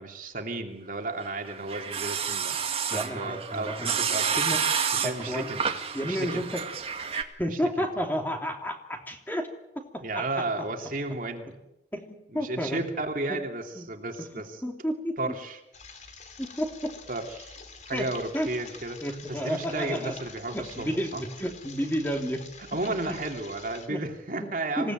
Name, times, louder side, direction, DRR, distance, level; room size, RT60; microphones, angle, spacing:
voice 1, 0.0-2.6 2.9-4.6 4.9-5.6 6.0-6.4 7.5-7.9 10.0-11.5 12.3-14.6 15.2-15.6 17.1-17.6 17.8-19.0 19.3-21.2 22.6-24.9, right 2 dB, 50° right, 3 dB, 2.9 m, -33 dB
sound 1, 1.3-7.2, right 7 dB, 35° right, 2.0 m, -30 dB
voice 2, 2.9-4.0 4.4-4.6 5.0-5.5 5.9-6.6 7.4-9.5 9.7-10.2 10.6-10.7 11.9-12.0 12.3-12.8 13.3-13.4 13.8-13.9 14.6-15.3 16.4-17.0 17.9-18.1 18.3-18.5 19.0-20.1 20.5-22.4 22.9-23.2 23.9-24.0 24.4-24.5 24.8-24.9, equal, 10° left, 3 dB, 2.9 m, -31 dB
sound 2, 15.7-23.9, left 5 dB, 40° left, 3.3 m, -47 dB
26.5 x 17.5 x 9.2 m, 0.87 s
head